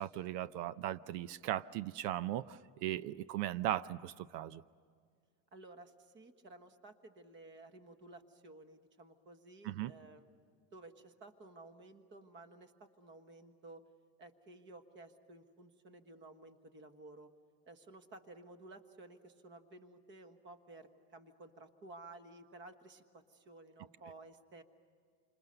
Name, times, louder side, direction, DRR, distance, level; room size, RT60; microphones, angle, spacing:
voice 1, 0.0-4.6 9.6-9.9, right 13 dB, 85° right, 16 dB, 0.8 m, -38 dB
voice 2, 5.5-13.9 14.2-17.3 17.6-24.6, right 2 dB, 25° right, 8 dB, 1.4 m, -55 dB
28.5 x 26.5 x 6.8 m, 2.1 s
cardioid pair, 180°, 46 cm